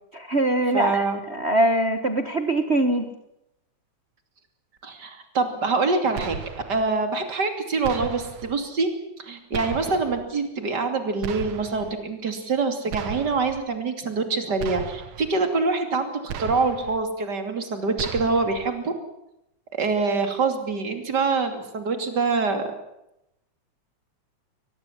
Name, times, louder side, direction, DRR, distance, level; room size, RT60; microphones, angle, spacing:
voice 1, 0.1-3.1, right 1 dB, 50° right, 7 dB, 0.7 m, -23 dB
voice 2, 0.7-1.2 4.8-6.3 6.7-8.9 9.2-18.9 19.7-22.7, right 4 dB, 35° right, 7 dB, 3.1 m, -25 dB
sound 1, 6.2-6.8 7.8-8.5 9.5-10.2 11.2-11.9 12.9-13.6 14.6-15.3 16.3-17.0 18.0-18.7, right 8 dB, 75° right, 2.8 m, -35 dB
23.0 x 20.0 x 7.4 m, 0.84 s
omnidirectional pair, 3.4 m